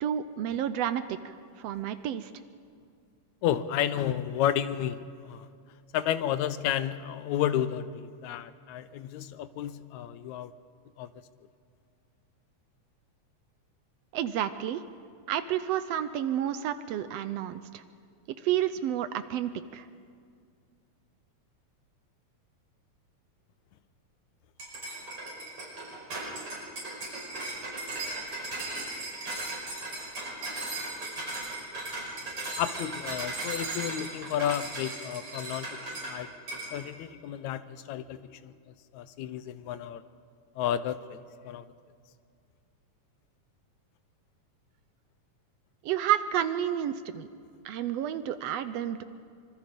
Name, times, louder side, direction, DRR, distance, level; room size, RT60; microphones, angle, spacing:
voice 1, 0.0-2.3 14.1-14.8 15.3-17.8 18.4-19.9 45.8-47.3 47.6-49.0, right 10 dB, 75° right, 11 dB, 1.5 m, -30 dB
voice 2, 3.4-5.5 5.9-10.5 11.0-11.1 32.6-36.3 36.7-38.5 38.9-40.0 40.6-41.2 41.4-41.7, left 10 dB, 75° left, 13 dB, 2.0 m, -31 dB
sound 1, 24.6-36.2 36.5-36.7, right 2 dB, 45° right, 6.4 m, -37 dB
25.5 x 24.0 x 5.3 m, 2.2 s
omnidirectional pair, 3.5 m